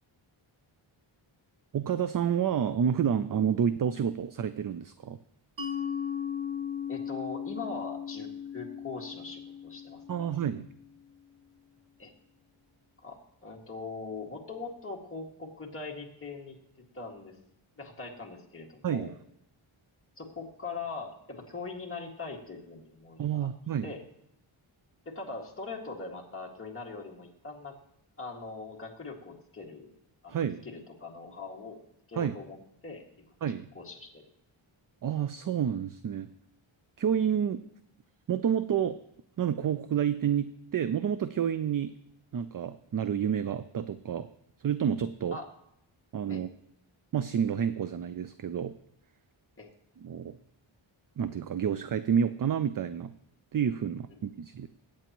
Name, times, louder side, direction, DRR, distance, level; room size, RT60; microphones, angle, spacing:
voice 1, 1.7-5.2 10.1-10.7 18.8-19.1 23.2-23.9 30.3-30.6 32.2-32.3 33.4-33.7 35.0-36.3 37.0-37.6 38.3-39.0 39.4-41.9 42.3-44.3 44.6-45.4 46.1-46.5 47.1-48.7 50.0-50.4 51.2-53.1 53.5-54.7, right 8 dB, 45° right, 12 dB, 0.4 m, -29 dB
Mallet percussion, 5.6-11.0, left 8 dB, 60° right, 1.7 m, -37 dB
voice 2, 6.9-10.3 12.0-12.1 13.0-16.6 16.9-17.3 17.8-19.1 20.2-23.5 23.8-24.0 25.1-27.7 28.2-29.9 30.2-30.4 30.6-31.8 32.1-32.6 32.8-33.3 33.7-34.3 45.3-45.5 46.3-46.4 49.6-49.7, left 3 dB, 25° left, -1 dB, 2.0 m, -41 dB
22.5 x 8.9 x 3.0 m, 0.78 s
wide cardioid pair, 155°, 50 cm